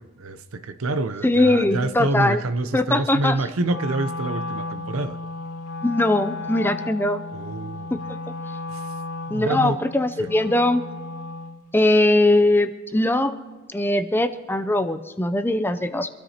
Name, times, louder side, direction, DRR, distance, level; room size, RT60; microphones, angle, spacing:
voice 1, 0.0-5.2 7.3-8.0 8.7-8.8 9.3-9.8 10.2-10.3, right 2 dB, 65° right, 0.7 m, -27 dB
voice 2, 1.2-2.4 2.7-3.4 5.8-7.2 7.9-8.2 9.3-10.8 11.7-13.4 13.7-16.1, left 1 dB, 10° left, 0.5 m, -21 dB
Wind instrument woodwind instrument, 3.6-11.6, left 2 dB, 90° left, 0.7 m, -34 dB
25.5 x 13.0 x 2.9 m
head